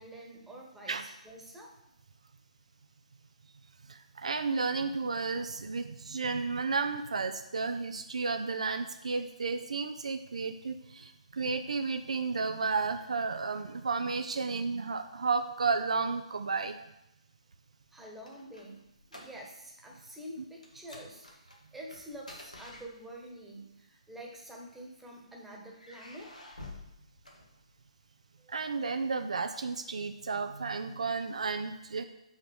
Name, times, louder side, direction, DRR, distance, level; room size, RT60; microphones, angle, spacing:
voice 1, 0.0-1.7 17.9-18.8 19.1-26.3 28.4-28.6, equal, 5° right, -1 dB, 1.3 m, -47 dB
voice 2, 3.9-16.8 28.5-32.1, right 4 dB, 65° right, 8 dB, 0.5 m, -32 dB
sound 1, 17.8-19.7 20.0-20.2 20.6-23.4 24.3-25.1 25.7-28.0, left 2 dB, 85° left, 1.5 m, -51 dB
5.5 x 4.9 x 6.2 m, 0.87 s
figure-of-eight pair, 130°, 4 cm